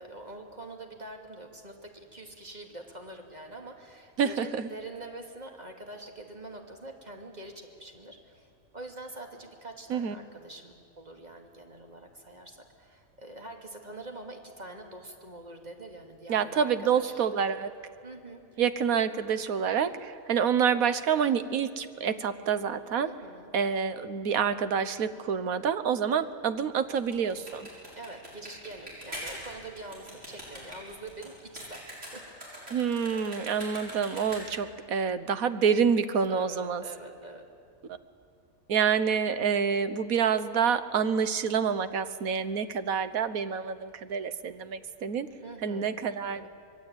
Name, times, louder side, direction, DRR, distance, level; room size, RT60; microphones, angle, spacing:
voice 1, 0.0-8.5 8.7-17.4 18.0-18.6 23.0-23.5 27.9-32.3 36.3-37.5 45.4-46.5, right 2 dB, 30° right, 2 dB, 2.7 m, -45 dB
voice 2, 4.2-4.7 9.9-10.1 16.3-17.7 18.6-23.1 23.5-27.7 32.7-36.8 38.7-45.3 45.6-46.5, right 7 dB, 80° right, 12 dB, 1.5 m, -27 dB
sound 1, 26.8-34.7, equal, 55° right, 7.1 m, -43 dB
25.5 x 21.5 x 9.0 m, 2.3 s
omnidirectional pair, 1.4 m